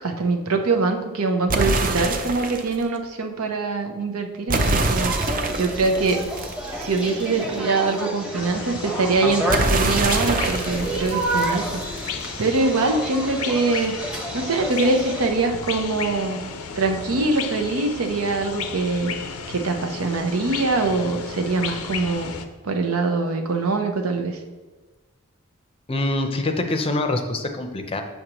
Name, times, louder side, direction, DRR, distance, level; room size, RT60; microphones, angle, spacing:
voice 1, 0.0-5.1 5.6-6.2 6.7-11.7 12.4-13.9 14.3-16.4 16.8-19.1 19.5-22.3 22.6-24.4, right 3 dB, 80° right, 5 dB, 0.7 m, -23 dB
sound 1, 1.5-2.7 4.5-7.2 9.5-12.2, right 2 dB, 40° right, 0.5 m, -25 dB
sound 2, 4.5-15.3, right 1 dB, 5° right, 0.9 m, -30 dB
sound 3, 8.4-22.5, left 6 dB, 85° left, 0.5 m, -34 dB
voice 2, 25.9-28.0, left 2 dB, 25° left, 5 dB, 0.6 m, -25 dB
6.5 x 6.4 x 3.0 m, 1.3 s
head